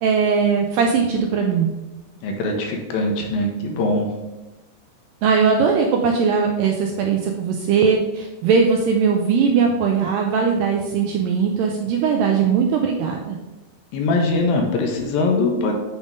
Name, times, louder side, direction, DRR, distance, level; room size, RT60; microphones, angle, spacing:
voice 1, 0.0-1.7 5.2-13.4, right 6 dB, 80° right, 2 dB, 2.0 m, -19 dB
voice 2, 2.2-4.1 13.9-15.7, left 2 dB, 75° left, 2 dB, 2.4 m, -21 dB
8.8 x 3.5 x 5.2 m, 1.1 s
omnidirectional pair, 4.5 m